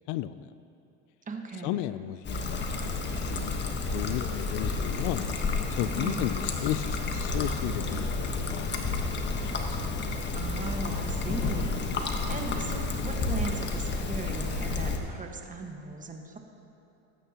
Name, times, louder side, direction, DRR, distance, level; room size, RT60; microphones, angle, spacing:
voice 1, 0.1-0.5 1.6-2.9 3.3-3.6 3.9-5.3 5.7-9.8, left 14 dB, 65° left, 14 dB, 0.5 m, -34 dB
voice 2, 1.3-1.8 6.0-6.4 10.3-16.4, right 3 dB, 25° right, 3 dB, 1.5 m, -38 dB
Trickle dribble, 2.2-15.0, left 3 dB, 30° left, 1.4 m, -31 dB
23.5 x 8.9 x 3.0 m, 2.8 s
supercardioid pair, 90°, 34 cm